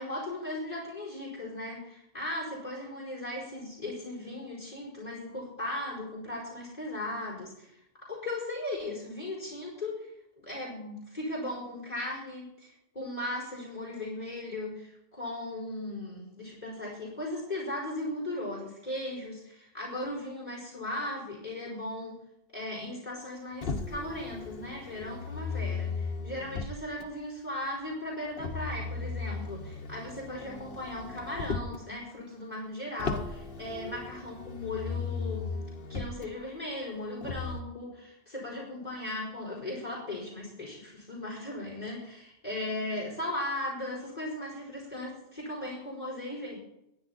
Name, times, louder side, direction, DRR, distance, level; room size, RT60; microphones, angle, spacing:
voice 1, 0.0-10.1 10.4-22.2 22.5-35.5 35.9-46.6, left 1 dB, 40° left, -4 dB, 4.9 m, -37 dB
Motor vehicle (road), 23.6-27.1 28.4-31.9 33.0-36.3 37.2-37.6, left 4 dB, 60° left, 1.4 m, -36 dB
20.5 x 10.5 x 4.3 m, 0.80 s
omnidirectional pair, 1.1 m